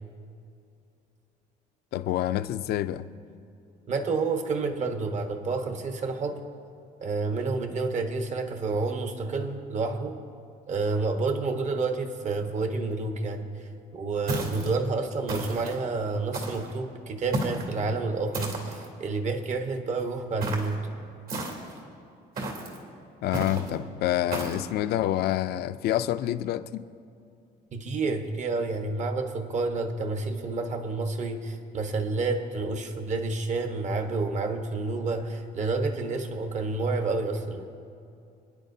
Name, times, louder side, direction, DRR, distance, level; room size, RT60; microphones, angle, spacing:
voice 1, 1.9-3.1 23.2-26.9, left 13 dB, 70° left, 0.5 m, -27 dB
voice 2, 3.9-6.5 7.0-10.2 10.7-13.5 13.9-20.8 27.7-37.7, right 3 dB, 45° right, 1.2 m, -29 dB
sound 1, 14.3-14.7 15.3-15.8 16.3-16.7 17.3-17.7 18.3-18.9 20.4-20.7 21.3-21.8 22.4-22.8 23.3-23.7 24.3-24.7, right 2 dB, 65° right, 3.1 m, -33 dB
28.5 x 10.0 x 2.7 m
cardioid pair, 110°, 17 cm